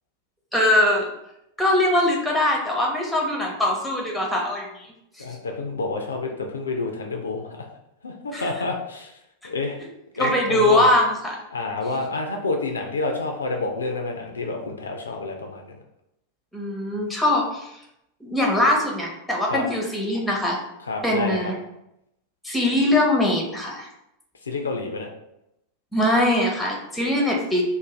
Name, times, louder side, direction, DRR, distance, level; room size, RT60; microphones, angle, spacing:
voice 1, 0.5-1.1 1.6-4.9 5.2-5.3 8.3-8.5 10.2-11.4 16.5-17.7 18.2-20.6 21.0-21.5 22.4-23.9 25.9-27.6, left 1 dB, 5° left, -1 dB, 0.7 m, -22 dB
voice 2, 5.2-7.7 8.0-9.1 9.4-9.8 10.2-10.9 11.5-15.8 19.5-19.6 20.9-21.5 24.5-25.1, left 3 dB, 70° left, 3 dB, 0.4 m, -29 dB
2.6 x 2.1 x 3.1 m, 0.82 s
figure-of-eight pair, 90°, 0 cm